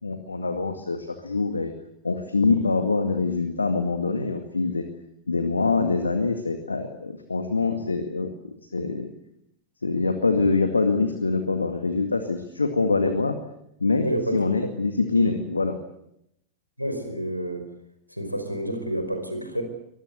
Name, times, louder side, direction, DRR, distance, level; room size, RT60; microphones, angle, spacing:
voice 1, 0.0-1.7 2.0-4.8 5.3-8.3 8.7-9.1 9.8-13.4 13.8-14.1 14.3-15.8, left 3 dB, 80° left, 7 dB, 2.0 m, -24 dB
voice 2, 14.0-14.4 16.8-17.7 18.1-19.6, right 1 dB, 90° right, 6 dB, 5.1 m, -29 dB
24.0 x 20.5 x 8.1 m, 0.79 s
figure-of-eight pair, 90°, 0 cm